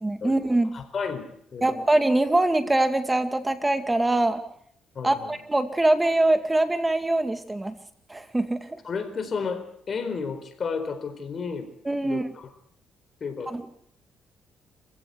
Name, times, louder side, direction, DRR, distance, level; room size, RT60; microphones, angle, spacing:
voice 1, 0.0-0.7 1.6-4.4 5.0-7.7 8.1-8.6 11.9-12.3 13.5-13.6, right 2 dB, 15° right, 9 dB, 2.4 m, -23 dB
voice 2, 0.7-1.3 1.5-1.8 4.9-5.4 8.8-11.7 12.0-12.5 13.2-13.7, left 5 dB, 45° left, 9 dB, 4.5 m, -32 dB
27.5 x 16.0 x 8.1 m, 0.67 s
cardioid pair, 90°, 0 cm